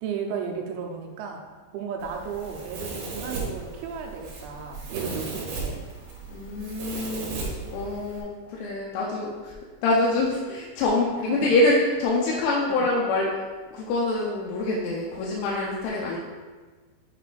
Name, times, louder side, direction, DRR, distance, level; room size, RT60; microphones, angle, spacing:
voice 1, 0.0-1.4 1.7-5.8 11.2-11.5 12.7-12.8, right 6 dB, 85° right, 2 dB, 3.1 m, -34 dB
Domestic sounds home sounds, 2.0-8.2, right 3 dB, 70° right, 3.1 m, -36 dB
voice 2, 6.3-7.4 7.7-9.5 9.8-13.3 13.7-16.2, left 2 dB, 90° left, -4 dB, 3.2 m, -25 dB
8.8 x 3.3 x 3.8 m, 1.4 s
omnidirectional pair, 5.4 m